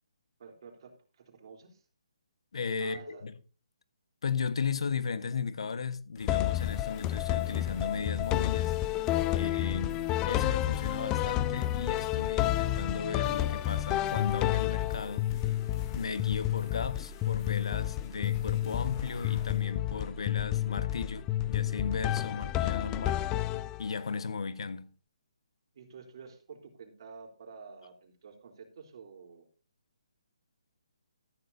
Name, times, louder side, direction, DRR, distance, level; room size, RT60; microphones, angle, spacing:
voice 1, 0.4-1.9 2.8-3.2 9.3-9.9 25.7-29.5, right 5 dB, 50° right, 3.7 m, -50 dB
voice 2, 2.5-3.3 4.2-8.7 9.3-15.3 15.9-23.2 23.8-24.9, left 5 dB, 65° left, 1.4 m, -35 dB
sound 1, 6.2-19.7, left 4 dB, 30° left, 2.6 m, -52 dB
sound 2, 6.3-24.1, left 14 dB, 15° left, 0.5 m, -30 dB
14.0 x 13.5 x 2.7 m
hypercardioid pair, 155°, 3 cm